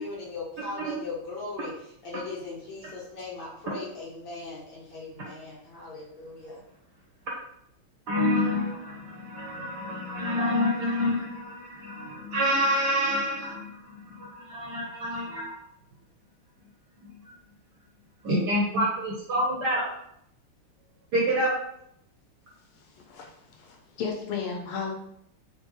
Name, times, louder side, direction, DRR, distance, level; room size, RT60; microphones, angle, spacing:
voice 1, 0.0-1.7 2.0-6.6, left 3 dB, 65° left, -5 dB, 1.7 m, -39 dB
voice 2, 8.1-15.6 17.0-17.1 18.2-19.9 21.1-21.5, equal, 70° right, -3 dB, 1.0 m, -27 dB
voice 3, 23.0-24.9, left 5 dB, 80° left, 1 dB, 1.6 m, -34 dB
4.4 x 2.0 x 3.0 m, 0.74 s
omnidirectional pair, 2.4 m